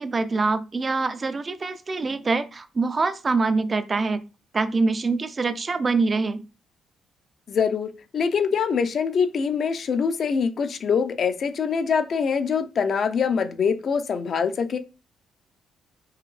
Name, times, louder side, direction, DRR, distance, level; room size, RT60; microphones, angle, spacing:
voice 1, 0.0-4.2 4.5-6.4, right 3 dB, 30° right, 0.4 m, -24 dB
voice 2, 7.5-14.8, left 6 dB, 55° left, 0.6 m, -24 dB
4.6 x 2.7 x 3.2 m
cardioid pair, 90°, 0 cm